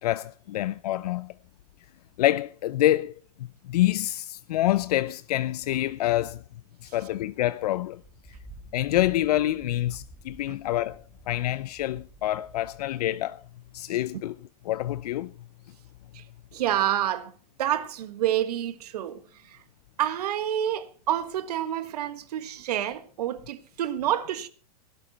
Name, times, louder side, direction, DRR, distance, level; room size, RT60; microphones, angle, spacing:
voice 1, 0.0-1.3 2.2-3.2 3.7-6.4 6.8-8.0 8.7-13.4 13.7-14.4 14.7-15.3, left 14 dB, 80° left, 0.6 m, -26 dB
sound 1, 8.0-13.0, right 2 dB, 10° right, 2.0 m, -50 dB
voice 2, 16.5-17.3 17.6-19.6 20.0-24.5, right 11 dB, 80° right, 1.6 m, -28 dB
17.5 x 12.0 x 4.1 m
supercardioid pair, 155°, 20 cm